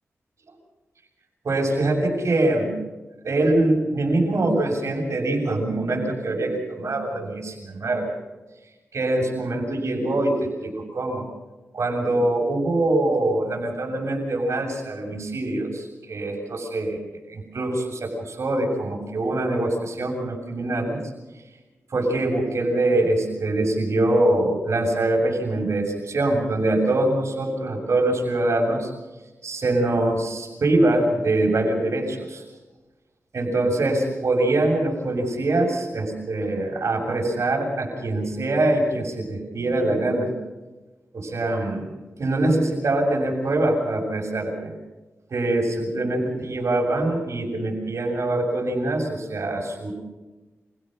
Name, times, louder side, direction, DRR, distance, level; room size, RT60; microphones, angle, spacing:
voice 1, 1.4-2.7 3.2-8.2 8.9-11.3 11.7-17.0 17.3-21.0 21.9-28.9 29.4-32.4 33.3-40.3 41.1-41.9 42.2-44.7 45.3-49.9, right 2 dB, 65° right, 0 dB, 7.0 m, -23 dB
26.5 x 16.5 x 6.4 m, 1.2 s
cardioid pair, 60°, 5 cm